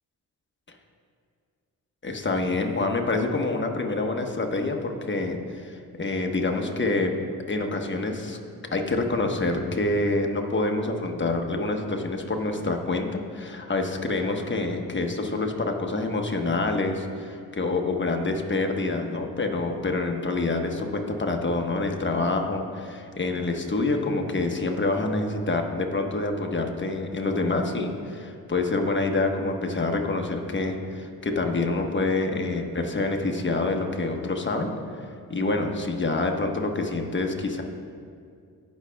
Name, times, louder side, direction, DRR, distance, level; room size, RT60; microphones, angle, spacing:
voice 1, 2.0-7.2 7.5-8.4 8.7-34.7 35.3-37.6, left 2 dB, 30° left, 3 dB, 1.2 m, -27 dB
17.5 x 6.3 x 2.3 m, 2.3 s
supercardioid pair, 55°, 37 cm